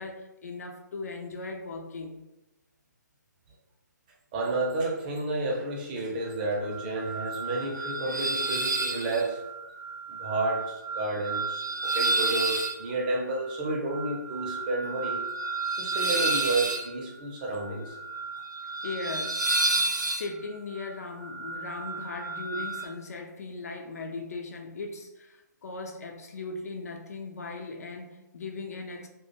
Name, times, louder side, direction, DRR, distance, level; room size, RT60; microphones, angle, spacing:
voice 1, 0.0-2.2 18.8-19.6 20.1-29.1, left 3 dB, 55° left, 3 dB, 0.4 m, -38 dB
voice 2, 4.3-9.4 10.2-15.2 15.8-18.0, right 2 dB, 25° right, -2 dB, 0.5 m, -31 dB
sound 1, 6.7-22.9, right 3 dB, 70° right, 0.5 m, -31 dB
2.3 x 2.2 x 2.8 m, 0.99 s
figure-of-eight pair, 140°, 10 cm